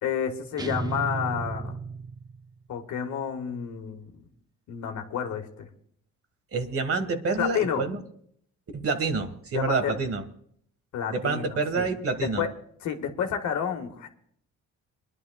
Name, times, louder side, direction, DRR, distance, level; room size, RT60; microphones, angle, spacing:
voice 1, 0.0-1.7 2.7-4.1 4.7-5.7 7.4-7.8 9.5-9.9 10.9-11.9 12.4-12.5 12.8-14.1, left 8 dB, 75° left, 5 dB, 1.7 m, -30 dB
sound 1, 0.6-2.6, right 4 dB, 15° right, 0.6 m, -33 dB
voice 2, 6.5-8.0 8.8-10.2 11.1-12.4, right 4 dB, 50° right, 7 dB, 1.7 m, -27 dB
26.5 x 11.0 x 2.4 m, 0.65 s
cardioid pair, 90°, 30 cm